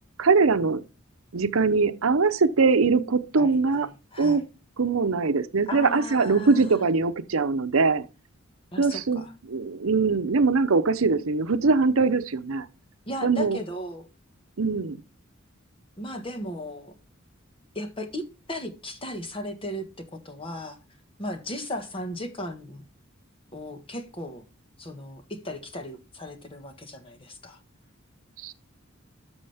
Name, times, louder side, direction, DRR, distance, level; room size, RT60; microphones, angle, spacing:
voice 1, 0.2-0.8 1.3-3.9 4.2-4.5 4.8-8.1 8.8-9.2 9.5-12.7 13.2-13.6 14.6-15.0 28.4-28.5, right 4 dB, 80° right, 0.7 m, -22 dB
voice 2, 3.4-4.4 5.7-6.8 8.7-9.3 13.1-14.1 16.0-16.9 17.7-19.9 20.1-20.8 21.2-22.8 23.5-24.4 24.8-27.6, left 1 dB, 25° left, 1.5 m, -36 dB
13.5 x 6.3 x 3.5 m
head